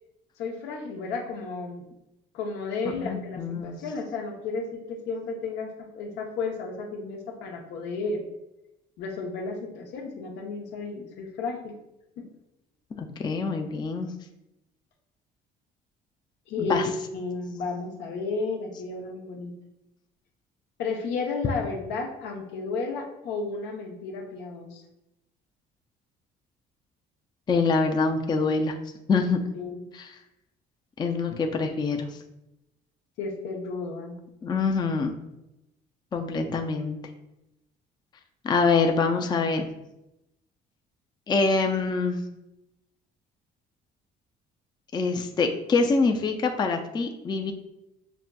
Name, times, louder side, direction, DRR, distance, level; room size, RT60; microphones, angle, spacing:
voice 1, 0.4-1.9 2.3-8.2 9.0-11.8 12.2-12.3 16.5-16.9 17.1-19.5 20.8-24.8 29.5-29.8 33.2-34.2, left 4 dB, 85° left, 2 dB, 0.8 m, -33 dB
voice 2, 2.8-3.8 12.9-14.1 16.6-16.9 27.5-28.7 29.1-29.4 29.9-30.1 31.0-32.1 34.4-35.1 36.1-37.0 38.4-39.7 41.3-42.2 44.9-47.5, left 4 dB, 25° left, 4 dB, 0.4 m, -25 dB
5.9 x 2.5 x 2.2 m, 0.89 s
cardioid pair, 110°, 17 cm